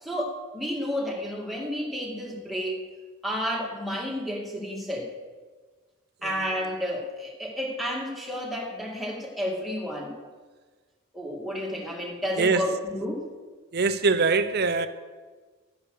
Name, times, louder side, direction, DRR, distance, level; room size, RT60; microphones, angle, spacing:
voice 1, 0.0-2.8 3.2-5.1 6.2-10.2 11.1-13.3, equal, ahead, 2.1 m, -31 dB
voice 2, 13.7-14.9, right 4 dB, 50° right, 0.7 m, -23 dB
12.5 x 10.0 x 6.5 m
head